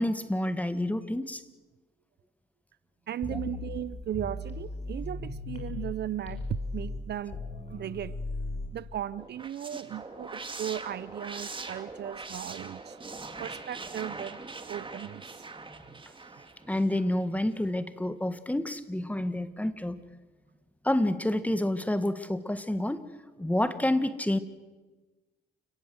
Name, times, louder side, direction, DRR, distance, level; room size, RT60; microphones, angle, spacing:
voice 1, 0.0-1.4 3.3-3.4 13.2-13.3 16.7-20.0 20.8-23.0 23.4-24.4, left 1 dB, 5° left, 11 dB, 1.7 m, -28 dB
voice 2, 3.1-8.2 8.7-13.0 13.4-14.4 14.7-15.3, right 11 dB, 55° right, 18 dB, 0.7 m, -36 dB
sound 1, 3.2-5.9 6.3-8.7, left 2 dB, 30° left, 6.1 m, -37 dB
sound 2, 9.2-17.2, right 3 dB, 25° right, 2.3 m, -42 dB
29.5 x 17.5 x 7.9 m, 1.2 s
cardioid pair, 90°, 20 cm